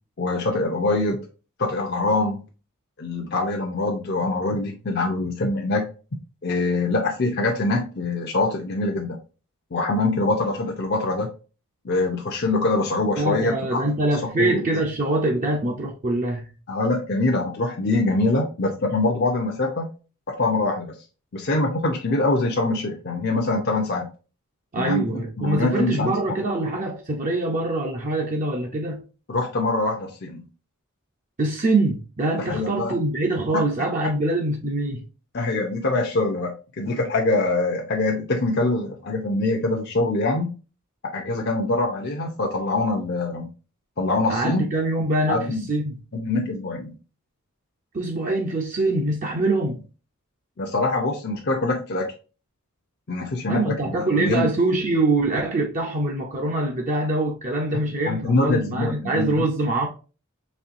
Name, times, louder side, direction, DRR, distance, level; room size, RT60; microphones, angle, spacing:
voice 1, 0.2-1.2 1.6-2.4 3.0-5.8 6.4-9.2 9.7-11.3 11.8-13.8 14.4-14.6 16.7-19.9 20.3-21.0 21.3-24.1 24.8-26.1 29.3-30.5 32.5-33.0 33.5-33.6 35.3-40.6 41.1-43.5 44.0-44.6 45.3-45.7 46.1-46.9 50.6-52.1 53.1-54.5 58.1-59.5, left 2 dB, 50° left, 0.6 m, -24 dB
voice 2, 13.2-16.5 24.7-29.0 31.4-35.1 44.3-45.9 47.9-49.8 53.5-59.9, right 2 dB, 40° right, 0.5 m, -24 dB
4.2 x 3.2 x 2.5 m
head